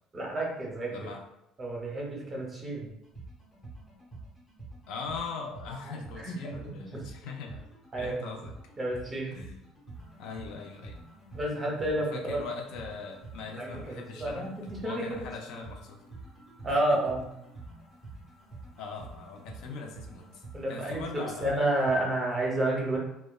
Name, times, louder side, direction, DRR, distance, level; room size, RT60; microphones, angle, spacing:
voice 1, 0.1-1.1 1.6-2.9 5.8-6.3 6.9-7.0 7.9-8.3 8.8-9.3 11.3-12.4 13.6-14.5 14.8-15.0 16.6-17.3 20.5-23.0, right 1 dB, 20° right, -2 dB, 0.6 m, -30 dB
voice 2, 0.9-1.2 4.9-7.7 8.0-8.5 9.3-9.6 10.2-11.0 11.9-16.0 16.7-17.0 18.8-20.4 20.7-21.6, left 4 dB, 70° left, 3 dB, 0.4 m, -41 dB
sound 1, 3.0-21.9, right 2 dB, 20° left, 0.8 m, -47 dB
2.9 x 2.1 x 2.2 m, 0.81 s
cardioid pair, 155°, 0 cm